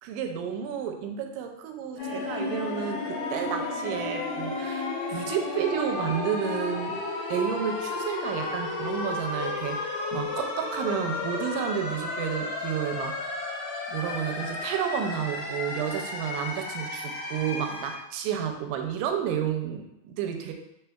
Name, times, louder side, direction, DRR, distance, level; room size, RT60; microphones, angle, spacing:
voice 1, 0.0-7.0 7.3-13.4 13.9-20.5, right 8 dB, 90° right, 5 dB, 2.1 m, -31 dB
sound 1, 2.0-18.0, left 3 dB, 65° left, 1.3 m, -33 dB
4.4 x 3.9 x 2.3 m, 0.86 s
omnidirectional pair, 3.7 m